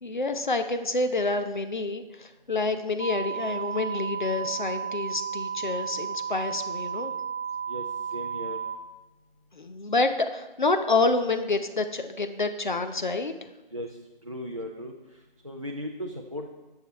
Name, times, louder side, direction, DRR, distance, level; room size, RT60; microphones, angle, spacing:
voice 1, 0.0-7.1 9.5-13.3, left 3 dB, 55° left, 8 dB, 0.7 m, -28 dB
sound 1, 3.0-8.8, right 7 dB, 80° right, 0.7 m, -33 dB
voice 2, 8.1-8.6 13.7-13.9 14.2-14.9 15.4-16.5, equal, 35° right, 1 dB, 0.5 m, -36 dB
11.5 x 6.7 x 3.1 m, 1.1 s
figure-of-eight pair, 170°, 29 cm